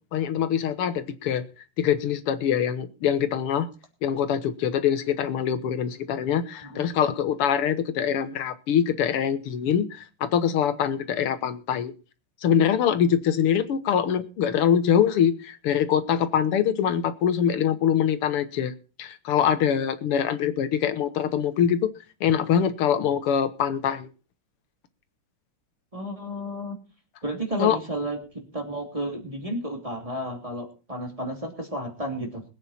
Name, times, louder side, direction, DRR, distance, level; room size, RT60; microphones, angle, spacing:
voice 1, 0.1-1.5 1.8-3.7 4.0-11.9 12.4-18.7 19.0-21.9 22.2-24.1 27.6-27.8, left 8 dB, 90° left, 11 dB, 2.1 m, -24 dB
voice 2, 25.9-26.8 27.2-32.4, right 1 dB, 15° right, 2 dB, 3.0 m, -32 dB
21.5 x 9.0 x 4.3 m, 0.33 s
omnidirectional pair, 2.4 m